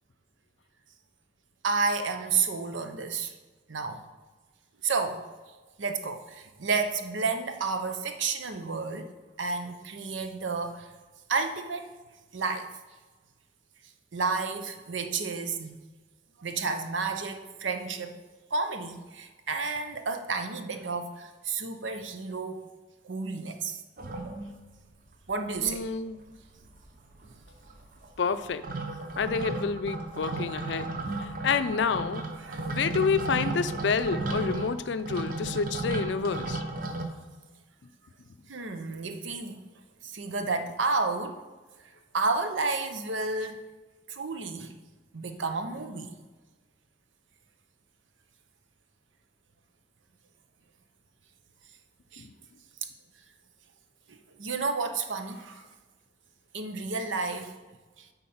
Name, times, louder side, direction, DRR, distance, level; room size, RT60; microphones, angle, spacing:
voice 1, 1.6-3.3 3.7-4.0 4.8-5.2 5.8-10.9 11.3-11.9 12.3-12.7 14.1-15.8 16.4-18.2 18.5-22.8 23.0-23.8 25.3-25.8 32.4-32.7 38.5-39.6 40.0-41.4 42.1-43.6 44.1-44.8 45.1-46.1 52.1-52.3 54.1-55.6 56.5-57.5 58.0-58.1, right 4 dB, 90° right, 7 dB, 0.8 m, -31 dB
sound 1, 24.0-24.9 25.3-25.4 25.6-26.2 26.5-37.1, right 2 dB, 45° right, 0.8 m, -34 dB
voice 2, 25.6-26.2 28.2-28.6 29.2-30.9 31.2-32.2 32.7-36.6, left 5 dB, 75° left, 11 dB, 0.4 m, -28 dB
8.6 x 4.0 x 5.6 m, 1.3 s
head